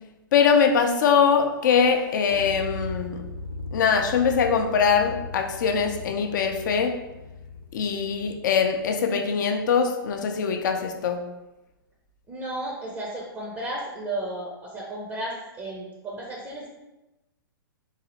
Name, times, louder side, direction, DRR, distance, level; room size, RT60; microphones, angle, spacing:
voice 1, 0.3-3.2 3.7-6.9 7.7-11.2, left 6 dB, 55° left, 5 dB, 0.5 m, -22 dB
sound 1, 2.3-9.0, left 2 dB, 80° right, 0.7 m, -38 dB
voice 2, 12.3-16.7, right 1 dB, 15° right, -3 dB, 0.6 m, -33 dB
3.8 x 2.7 x 3.0 m, 1.0 s
figure-of-eight pair, 120°, 12 cm